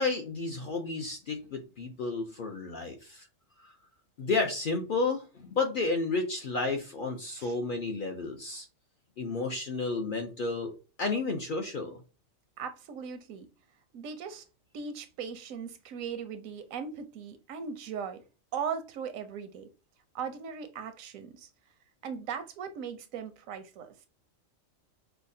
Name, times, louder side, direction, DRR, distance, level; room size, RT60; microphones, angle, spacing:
voice 1, 0.0-3.3 3.6-3.7 4.2-8.7 9.2-10.7 11.0-12.0, left 3 dB, 60° left, 0.5 m, -31 dB
voice 2, 12.6-13.5 13.9-14.4 14.7-18.2 18.5-19.7 20.1-21.5 22.0-23.9, right 6 dB, 85° right, 1.0 m, -38 dB
5.6 x 2.0 x 2.6 m
omnidirectional pair, 1.4 m